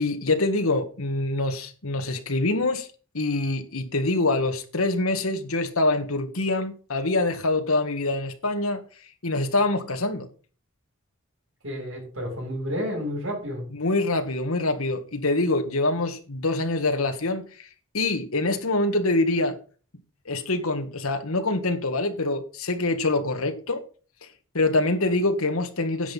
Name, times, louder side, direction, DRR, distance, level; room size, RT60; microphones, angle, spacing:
voice 1, 0.0-2.9 3.1-8.8 9.2-10.3 13.7-17.7 17.9-19.6 20.2-23.8 24.5-26.1, left 2 dB, 85° left, 1.8 m, -25 dB
voice 2, 11.6-13.6, equal, 70° right, 6.9 m, -30 dB
10.0 x 7.8 x 5.6 m
head